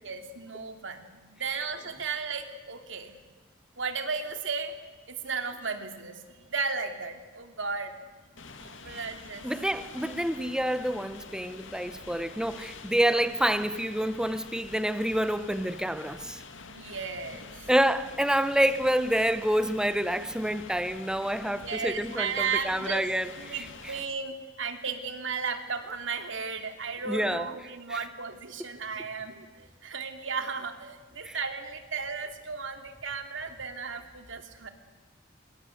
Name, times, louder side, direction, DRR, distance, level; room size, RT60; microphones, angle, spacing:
voice 1, 0.0-3.1 3.8-4.7 5.1-8.0 8.6-9.5 13.0-13.2 16.6-17.7 21.4-23.1 23.4-34.7, right 5 dB, 65° right, 3.0 m, -35 dB
sound 1, 8.4-24.0, left 4 dB, 65° left, 2.4 m, -46 dB
voice 2, 9.4-16.4 17.7-23.9 27.1-27.5 27.9-28.0 31.2-31.4, equal, 5° right, 1.1 m, -28 dB
26.0 x 24.0 x 8.0 m
head